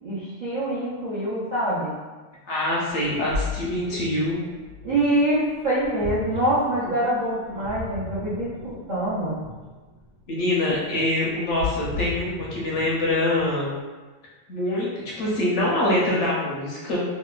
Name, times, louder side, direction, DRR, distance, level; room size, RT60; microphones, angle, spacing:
voice 1, 0.0-1.9 4.8-9.4, right 1 dB, 60° right, -11 dB, 0.4 m, -25 dB
voice 2, 2.5-4.4 10.3-13.7 14.5-17.0, left 1 dB, 65° left, -5 dB, 0.8 m, -24 dB
Ocean, 3.0-13.7, left 3 dB, 85° right, 1.0 m, -36 dB
2.9 x 2.0 x 2.3 m, 1.3 s
omnidirectional pair, 1.5 m